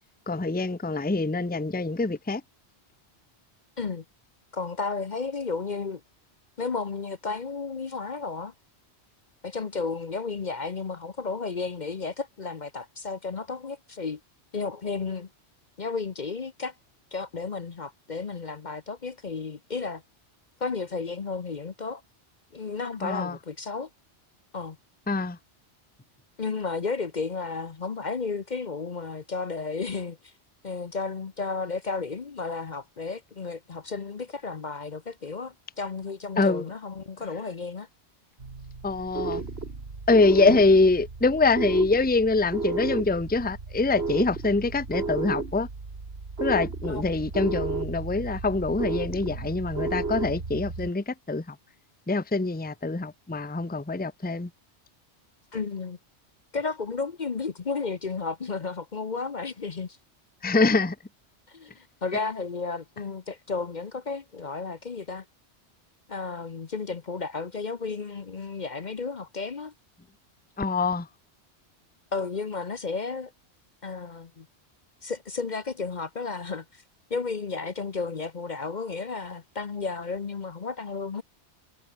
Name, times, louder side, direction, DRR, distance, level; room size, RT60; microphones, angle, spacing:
voice 1, 0.3-2.4 23.0-23.3 25.1-25.4 36.4-36.6 38.8-39.4 40.1-45.7 46.4-51.4 52.1-54.5 60.4-60.9 70.6-71.1, left 3 dB, 10° left, 0.8 m, -24 dB
voice 2, 4.5-6.0 6.6-8.5 9.4-14.2 14.5-15.3 15.8-16.7 17.1-20.0 20.6-22.0 22.5-23.9 24.5-24.8 26.4-30.3 30.6-37.9 40.4-40.6 46.9-47.4 55.5-56.0 56.5-60.0 61.5-61.7 62.0-65.2 66.1-69.7 72.1-73.3 73.8-74.5 75.0-76.8 77.1-81.2, left 4 dB, 45° left, 1.0 m, -33 dB
sound 1, 38.4-50.9, right 3 dB, 65° right, 2.7 m, -33 dB
omnidirectional pair, 1.1 m